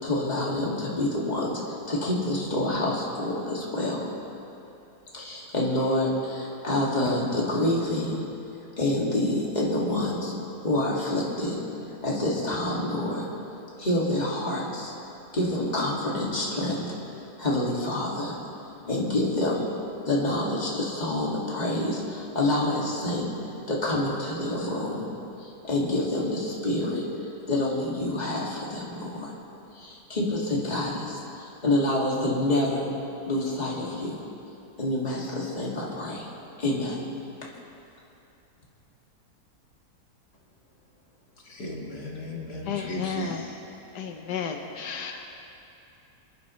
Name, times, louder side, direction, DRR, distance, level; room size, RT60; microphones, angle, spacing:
voice 1, 0.0-4.1 5.1-8.2 8.8-10.3 10.6-11.6 12.0-13.3 13.8-14.9 15.3-16.8 17.4-18.4 18.8-19.7 20.1-25.1 25.4-29.3 29.7-32.9 33.3-34.2 34.8-36.3 36.6-37.0, left 1 dB, 25° left, -5 dB, 2.2 m, -27 dB
voice 2, 41.5-43.5, left 1 dB, 70° left, -3 dB, 2.5 m, -36 dB
voice 3, 42.6-43.4 43.9-45.3, left 7 dB, 85° left, 4 dB, 1.4 m, -33 dB
26.0 x 11.5 x 3.1 m, 2.8 s
omnidirectional pair, 1.7 m